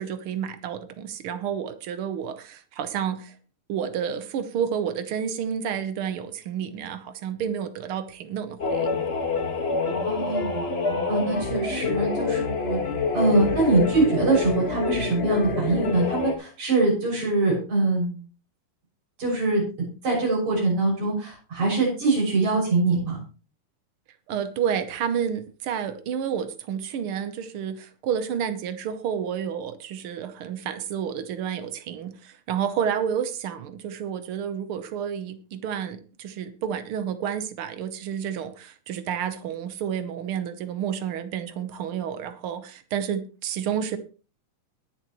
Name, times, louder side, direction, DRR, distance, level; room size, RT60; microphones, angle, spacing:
voice 1, 0.0-3.3 3.7-8.9 24.3-44.0, right 8 dB, 75° right, 10 dB, 1.2 m, -30 dB
sound 1, 8.6-16.3, left 4 dB, 35° left, 1.0 m, -26 dB
voice 2, 10.1-10.7 11.1-12.8 13.1-18.2 19.2-19.6 20.0-23.2, right 3 dB, 60° right, -2 dB, 7.9 m, -23 dB
21.5 x 7.3 x 3.1 m, 0.35 s
omnidirectional pair, 3.7 m